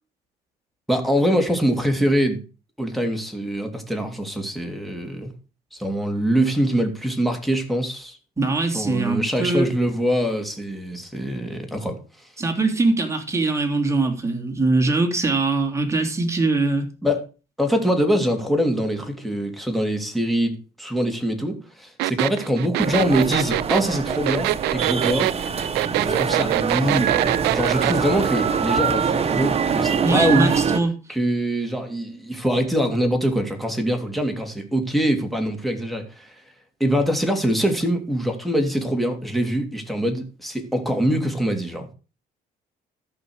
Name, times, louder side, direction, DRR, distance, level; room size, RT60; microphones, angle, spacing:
voice 1, 0.9-2.4 2.8-5.3 5.7-8.2 8.7-12.3 17.0-17.2 17.6-25.3 26.0-27.3 27.5-30.6 31.1-36.4 36.8-41.9, equal, ahead, 3.0 m, -23 dB
voice 2, 8.4-9.7 12.4-16.9 30.0-30.9, right 3 dB, 15° right, 3.3 m, -22 dB
sound 1, 22.0-28.0, right 18 dB, 85° right, 0.5 m, -23 dB
sound 2, 22.8-30.8, right 6 dB, 35° right, 1.4 m, -24 dB
13.5 x 5.9 x 6.4 m
cardioid pair, 110°, 17 cm